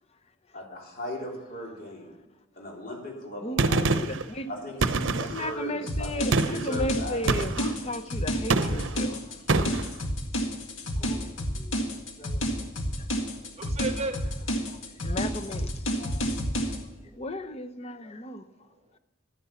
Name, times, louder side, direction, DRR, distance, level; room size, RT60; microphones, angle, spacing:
voice 1, 0.5-2.1 2.6-4.2 4.5-7.9, left 1 dB, 50° left, 3.7 m, -38 dB
voice 2, 3.4-4.5 5.1-9.4 9.7-9.8 11.0-11.8 12.2-12.4 14.7-16.2 16.7-16.8 17.2-18.4, left 1 dB, 30° left, 0.8 m, -35 dB
Gunshot gunfire, 3.6-4.2 4.8-5.5 6.3-6.7 7.3-7.7 8.5-9.0 9.5-9.9, right 3 dB, 70° right, 0.7 m, -25 dB
sound 1, 5.9-16.8, equal, 80° left, 1.9 m, -30 dB
voice 3, 13.4-14.9 16.5-16.7 17.1-17.2, right 2 dB, 35° right, 1.0 m, -37 dB
12.0 x 9.9 x 7.1 m
head